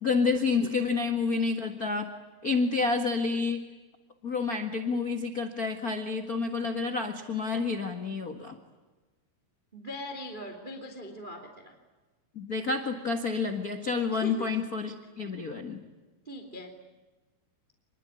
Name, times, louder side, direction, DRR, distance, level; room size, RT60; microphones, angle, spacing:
voice 1, 0.0-2.1 2.4-3.6 4.2-8.6 12.3-15.8, left 4 dB, 60° left, 6 dB, 0.9 m, -29 dB
voice 2, 9.7-11.8 14.1-14.6 16.2-16.8, left 1 dB, 15° right, 4 dB, 2.4 m, -41 dB
28.0 x 21.5 x 9.8 m, 1.2 s
omnidirectional pair, 4.6 m